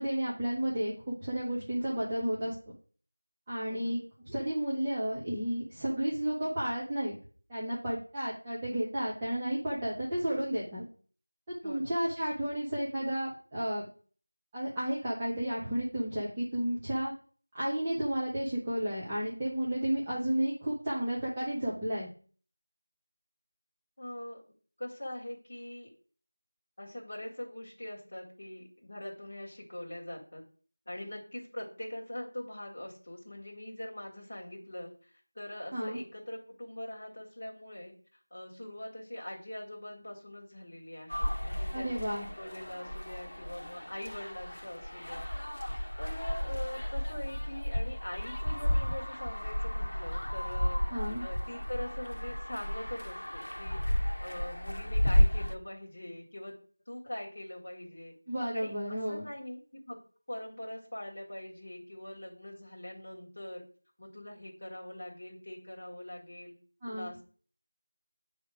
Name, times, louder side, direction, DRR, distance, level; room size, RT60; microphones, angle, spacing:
voice 1, 0.0-2.5 3.5-7.1 7.5-10.8 11.6-13.9 14.5-17.1 17.5-22.1 35.7-36.0 41.7-42.3 50.9-51.2 58.3-59.2 66.8-67.1, right 1 dB, 5° right, -9 dB, 0.6 m, -32 dB
voice 2, 24.0-24.4 24.8-25.9 26.8-30.4 30.8-37.9 38.3-45.3 46.0-50.8 51.2-56.6 56.9-58.1 58.5-60.0 60.3-63.6 64.0-66.5 66.9-67.2, left 1 dB, 20° left, -4 dB, 1.5 m, -43 dB
sound 1, 41.1-55.5, equal, 75° left, 0.8 m, -32 dB
8.9 x 3.5 x 4.8 m, 0.42 s
figure-of-eight pair, 180°, 0 cm